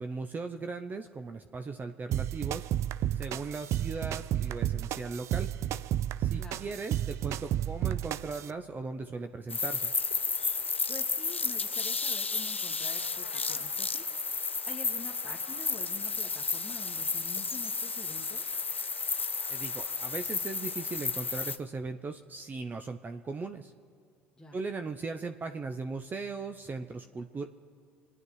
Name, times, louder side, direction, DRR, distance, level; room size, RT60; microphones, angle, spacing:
voice 1, 0.0-2.7 3.1-5.5 6.2-9.9 19.5-23.7 24.5-27.5, right 4 dB, 30° right, 7 dB, 0.8 m, -38 dB
sound 1, 2.1-8.5, right 12 dB, 50° right, 0.4 m, -32 dB
voice 2, 6.3-6.7 10.9-14.0 14.4-18.5 24.4-24.6, left 3 dB, 10° left, 0 dB, 1.6 m, -47 dB
sound 2, 9.5-21.6, left 4 dB, 90° left, 0.4 m, -32 dB
27.0 x 9.9 x 4.8 m, 2.2 s
figure-of-eight pair, 55°, 6 cm